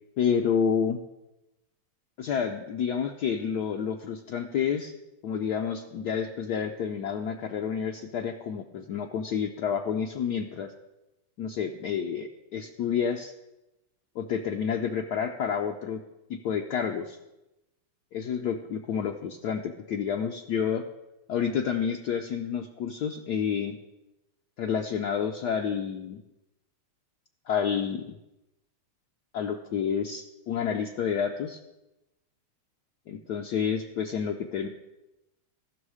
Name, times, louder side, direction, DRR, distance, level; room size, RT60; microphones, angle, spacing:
voice 1, 0.2-1.0 2.2-4.9 5.2-10.7 11.4-13.3 14.2-16.0 16.3-17.2 18.1-20.8 21.3-23.8 24.6-26.2 27.5-28.0 29.3-31.6 33.1-34.7, left 7 dB, 80° left, 3 dB, 0.9 m, -29 dB
14.0 x 6.3 x 4.8 m, 0.94 s
omnidirectional pair, 2.4 m